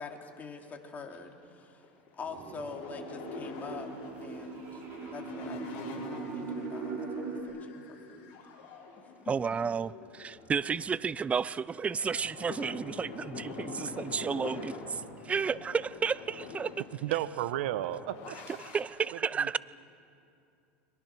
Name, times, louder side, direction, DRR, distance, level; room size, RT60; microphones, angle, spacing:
voice 1, 0.0-1.9 2.1-3.9 4.2-4.8 5.1-8.4 9.0-9.3, left 4 dB, 30° left, 2 dB, 3.2 m, -45 dB
sound 1, 1.1-1.2 1.6-18.8, left 4 dB, 60° left, 5.4 m, -46 dB
sound 2, 2.3-7.4, right 4 dB, 45° right, 6.0 m, -40 dB
voice 2, 9.3-16.7 18.6-19.6, right 6 dB, 20° right, 19 dB, 0.6 m, -32 dB
voice 3, 17.0-18.4 19.4-19.6, right 13 dB, 75° right, 13 dB, 1.2 m, -33 dB
29.5 x 23.0 x 6.3 m, 2.6 s
hypercardioid pair, 100°, 6 cm